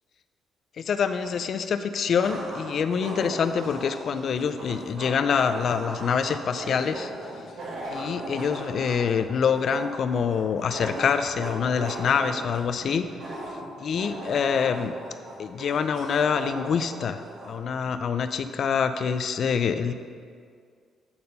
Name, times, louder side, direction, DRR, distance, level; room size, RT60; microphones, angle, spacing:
voice 1, 0.8-7.1 7.9-13.1 13.8-15.0 15.4-19.9, left 6 dB, 60° left, 10 dB, 0.4 m, -26 dB
sound 1, 1.2-1.3 2.2-17.6, right 1 dB, 65° right, 1.5 m, -38 dB
8.6 x 4.2 x 5.4 m, 2.1 s
cardioid pair, 90°, 0 cm